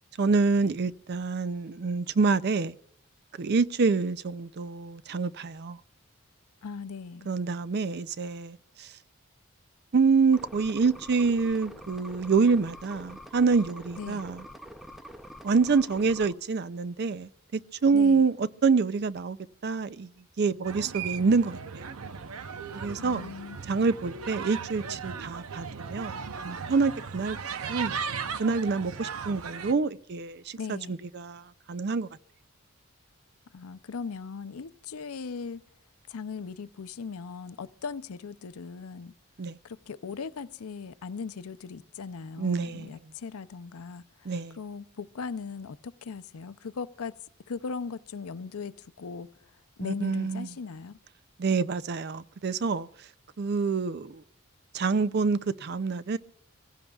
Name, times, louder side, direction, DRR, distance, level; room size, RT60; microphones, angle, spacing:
voice 1, 0.2-2.8 3.4-5.8 7.3-8.9 9.9-14.4 15.4-17.3 17.8-19.4 19.6-20.1 20.4-21.9 22.7-23.3 23.7-32.1 39.4-39.6 42.4-43.0 44.3-44.6 49.8-50.5 51.4-52.9 53.4-54.2 54.7-56.2, right 4 dB, 50° right, 0.4 m, -27 dB
voice 2, 6.6-7.3 14.0-14.2 17.9-18.2 23.0-23.6 30.6-31.0 33.5-35.6 36.1-39.1 39.6-47.2 47.5-49.3 49.8-51.0, left 5 dB, 85° left, 0.5 m, -38 dB
sound 1, 10.3-16.3, equal, ahead, 0.5 m, -45 dB
sound 2, 20.6-29.7, right 6 dB, 80° right, 0.7 m, -37 dB
24.0 x 16.0 x 2.3 m
head